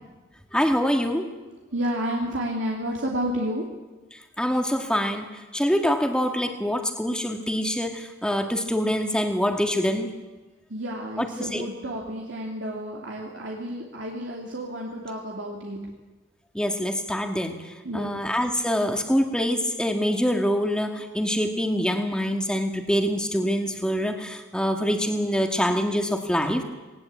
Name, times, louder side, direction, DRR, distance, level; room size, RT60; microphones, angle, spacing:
voice 1, 0.5-1.3 4.4-5.3 5.5-10.1 11.2-11.7 16.5-17.6 17.9-26.6, equal, 5° left, 5 dB, 1.9 m, -25 dB
voice 2, 1.7-3.7 10.7-15.8 17.8-18.2, equal, 70° right, -1 dB, 2.8 m, -31 dB
20.5 x 19.0 x 8.4 m, 1.2 s
head